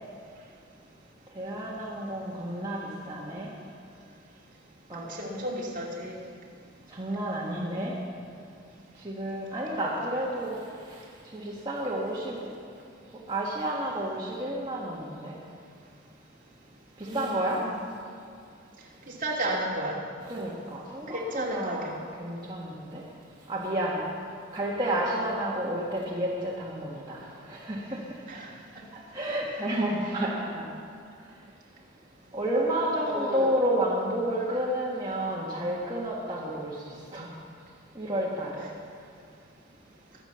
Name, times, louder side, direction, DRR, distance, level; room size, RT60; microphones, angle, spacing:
voice 1, 1.3-3.5 4.9-5.0 6.9-7.9 9.0-10.6 11.3-12.4 13.3-15.3 17.0-17.6 20.3-21.9 22.2-23.0 23.5-24.0 24.5-28.0 28.9-30.6 32.3-36.8 37.1-37.3 37.9-38.6, right 1 dB, 20° right, -5 dB, 1.7 m, -30 dB
voice 2, 5.1-6.2 17.0-17.8 19.1-20.0 21.1-21.9 28.3-28.5 33.1-33.5, right 1 dB, 40° right, -3 dB, 2.6 m, -33 dB
22.5 x 8.2 x 6.9 m, 2.3 s
head